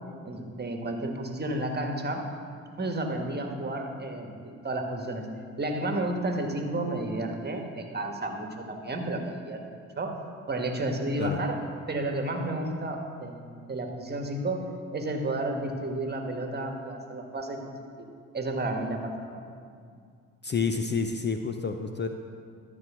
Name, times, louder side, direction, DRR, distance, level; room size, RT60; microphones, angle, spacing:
voice 1, 0.2-2.3 2.8-5.3 5.6-9.6 10.0-10.2 10.5-11.6 11.9-14.6 14.9-17.7 18.0-18.1 18.3-19.5, right 1 dB, 25° right, 3 dB, 1.5 m, -31 dB
voice 2, 20.4-22.1, left 5 dB, 30° left, 6 dB, 0.6 m, -29 dB
13.0 x 4.8 x 6.1 m, 2.2 s
hypercardioid pair, 55°, 37 cm